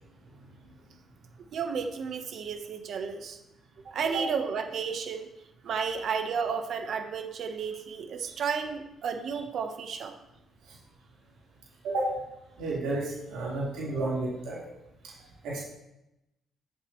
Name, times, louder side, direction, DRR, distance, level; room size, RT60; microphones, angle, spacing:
voice 1, 1.5-3.4 3.8-5.3 5.6-10.2, right 6 dB, 65° right, 6 dB, 1.1 m, -32 dB
voice 2, 12.6-14.6 15.0-15.1 15.4-15.6, right 2 dB, 85° right, -7 dB, 4.2 m, -31 dB
12.5 x 8.8 x 3.2 m, 0.89 s
cardioid pair, 90°, 0 cm